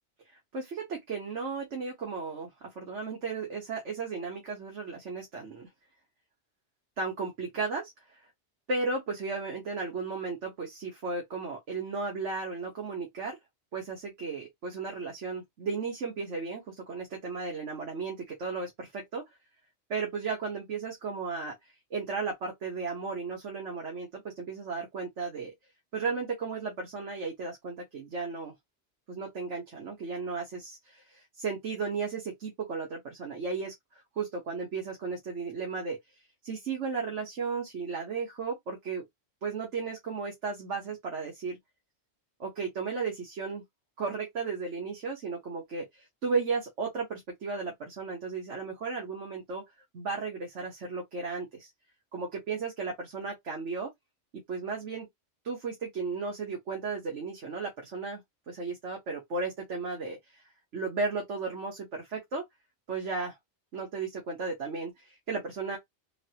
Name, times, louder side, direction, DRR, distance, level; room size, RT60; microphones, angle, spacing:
voice 1, 0.3-5.7 7.0-8.2 8.7-13.4 13.7-19.2 19.9-21.5 21.9-25.5 25.9-28.5 29.1-33.7 34.2-36.0 36.4-39.0 39.4-41.6 42.4-43.6 44.0-49.6 49.9-51.7 52.1-53.9 54.3-55.1 55.4-58.2 58.5-60.4 60.7-62.4 62.9-63.4 63.7-65.8, right 4 dB, 85° right, 1.6 m, -35 dB
3.9 x 2.8 x 2.9 m
omnidirectional pair, 1.2 m